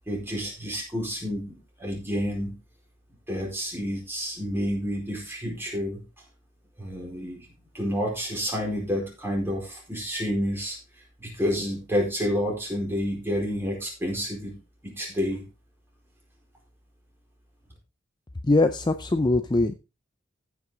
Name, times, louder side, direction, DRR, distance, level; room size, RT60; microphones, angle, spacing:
voice 1, 0.1-2.6 3.3-6.0 6.8-7.5 7.7-10.8 11.2-14.6 14.8-15.4, equal, 10° right, -1 dB, 4.6 m, -29 dB
voice 2, 18.4-19.7, left 2 dB, 20° left, 9 dB, 0.5 m, -22 dB
15.0 x 6.0 x 3.8 m, 0.28 s
head